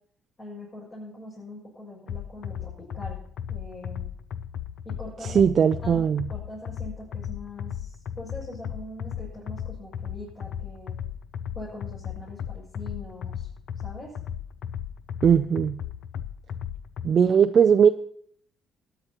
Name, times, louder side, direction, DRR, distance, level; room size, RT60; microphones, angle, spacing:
voice 1, 0.4-3.2 3.5-4.1 4.8-5.5 5.8-6.0 6.3-11.0 11.5-13.5 13.8-14.1, left 1 dB, 30° left, -7 dB, 6.4 m, -42 dB
sound 1, 2.1-17.1, left 9 dB, 60° left, 0.6 m, -35 dB
voice 2, 5.3-6.3 15.2-15.8 17.0-17.9, right 7 dB, 40° right, 7 dB, 0.4 m, -19 dB
21.0 x 10.0 x 3.0 m, 0.63 s
cardioid pair, 150°, 0 cm